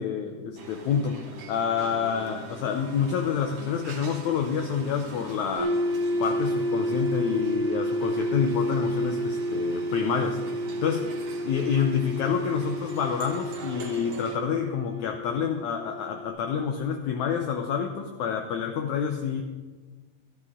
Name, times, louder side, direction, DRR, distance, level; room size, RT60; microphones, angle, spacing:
voice 1, 0.0-5.8 6.2-10.4 10.8-11.1 11.4-19.4, left 7 dB, 85° left, 5 dB, 1.6 m, -28 dB
sound 1, 0.6-14.4, right 4 dB, 55° right, 1.7 m, -43 dB
sound 2, 5.6-16.3, equal, 25° left, 0.9 m, -30 dB
15.0 x 12.5 x 3.7 m, 1.3 s
omnidirectional pair, 4.3 m